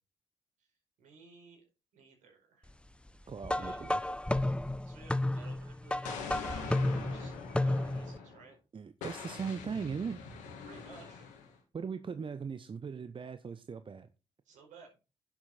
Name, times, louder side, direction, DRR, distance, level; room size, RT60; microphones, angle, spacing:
voice 1, 1.0-1.7 1.9-2.7 3.2-3.8 4.8-8.6 10.6-11.3 14.4-15.0, right 5 dB, 70° right, 4.9 m, -56 dB
voice 2, 3.3-4.1 8.7-10.2 11.7-14.1, right 6 dB, 40° right, 0.9 m, -39 dB
sound 1, 3.4-8.2, left 1 dB, 10° left, 0.8 m, -32 dB
Explosion, 6.0-8.5 9.0-11.6, left 5 dB, 75° left, 2.3 m, -44 dB
10.5 x 7.7 x 4.2 m
hypercardioid pair, 40°, 14 cm